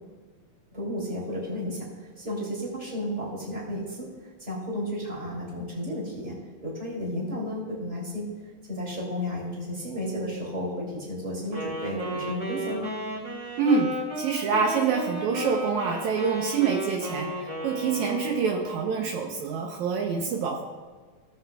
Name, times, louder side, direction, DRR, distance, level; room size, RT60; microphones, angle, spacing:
voice 1, 0.7-4.1 4.4-6.4 6.6-8.3 8.7-12.9, equal, 15° right, -5 dB, 2.8 m, -33 dB
Wind instrument woodwind instrument, 11.5-18.7, right 1 dB, 30° right, 2.9 m, -34 dB
voice 2, 13.6-20.6, right 5 dB, 75° right, 1 dB, 2.1 m, -26 dB
17.0 x 7.5 x 2.3 m, 1.5 s
omnidirectional pair, 3.5 m